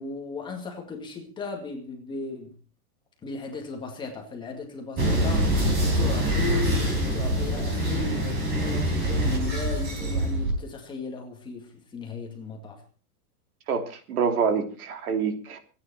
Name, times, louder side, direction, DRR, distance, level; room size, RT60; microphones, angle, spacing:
voice 1, 0.0-2.6 3.2-5.7 5.9-12.8, left 4 dB, 10° left, 2.1 m, -36 dB
sound 1, 5.0-10.5, right 1 dB, 20° right, 4.3 m, -25 dB
voice 2, 13.7-15.6, right 6 dB, 70° right, 3.3 m, -26 dB
25.5 x 9.8 x 4.4 m
supercardioid pair, 175°, 46 cm